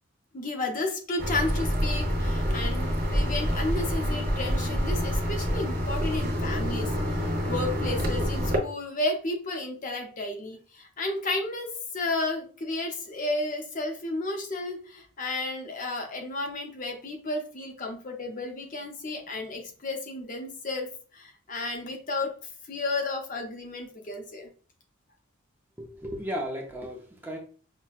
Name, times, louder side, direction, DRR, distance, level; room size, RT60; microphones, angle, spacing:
voice 1, 0.3-22.3 22.7-24.5, left 2 dB, 40° left, 3 dB, 0.6 m, -32 dB
sound 1, 1.2-8.6, equal, 45° right, 0.8 m, -27 dB
voice 2, 25.8-27.4, equal, 10° right, -1 dB, 0.5 m, -35 dB
5.7 x 2.2 x 2.3 m, 0.40 s
head